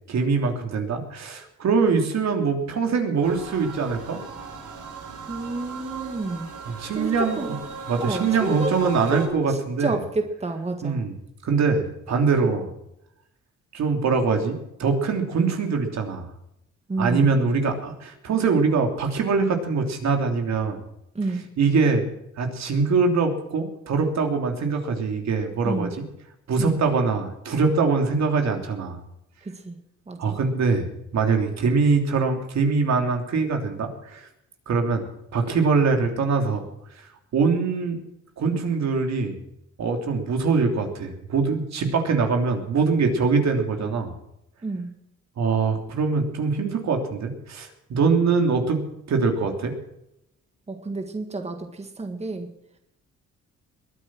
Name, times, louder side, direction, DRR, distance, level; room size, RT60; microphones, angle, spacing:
voice 1, 0.1-4.2 6.6-7.6 7.9-10.0 10.8-11.1 11.4-12.7 13.7-16.3 17.0-20.8 21.6-22.1 22.4-26.0 26.5-29.0 30.2-30.9 31.1-34.3 34.7-35.0 35.3-36.6 37.3-38.0 38.4-39.4 39.8-44.1 45.4-49.7, right 4 dB, 60° right, 4 dB, 3.2 m, -23 dB
sound 1, 3.2-9.3, right 5 dB, 80° right, 3.9 m, -37 dB
voice 2, 5.3-6.5 6.9-7.5 8.0-11.0 16.9-17.3 21.2-21.5 25.6-25.9 26.6-26.8 29.5-29.8 30.1-30.3 44.6-44.9 50.7-52.5, right 3 dB, 20° right, 6 dB, 1.8 m, -30 dB
21.0 x 10.0 x 6.2 m, 0.81 s
cardioid pair, 90°, 30 cm